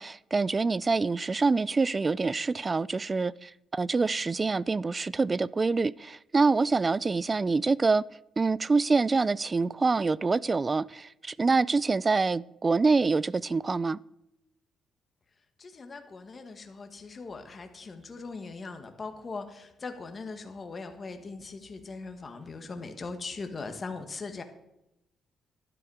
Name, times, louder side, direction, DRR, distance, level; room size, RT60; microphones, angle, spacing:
voice 1, 0.0-8.0 8.4-14.0, right 4 dB, 30° right, 0.3 m, -26 dB
voice 2, 15.6-24.4, left 4 dB, 35° left, 1.7 m, -40 dB
12.0 x 10.0 x 4.9 m
cardioid pair, 90°, 0 cm